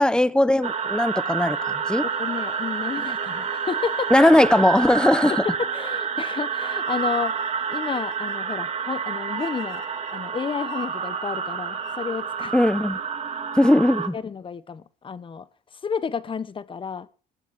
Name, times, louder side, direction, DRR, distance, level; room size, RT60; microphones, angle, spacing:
voice 1, 0.0-2.0 4.1-5.4 12.5-13.0 13.6-14.2, left 1 dB, 5° left, 1.0 m, -19 dB
sound 1, 0.6-14.1, right 6 dB, 40° right, 2.1 m, -29 dB
voice 2, 2.0-4.3 5.3-7.4 7.7-12.5 14.1-15.5 15.7-17.1, left 6 dB, 30° left, 1.2 m, -31 dB
sound 2, 2.1-5.9 6.6-12.2, left 12 dB, 80° left, 2.2 m, -48 dB
20.5 x 7.4 x 7.4 m
cardioid pair, 110°, 17 cm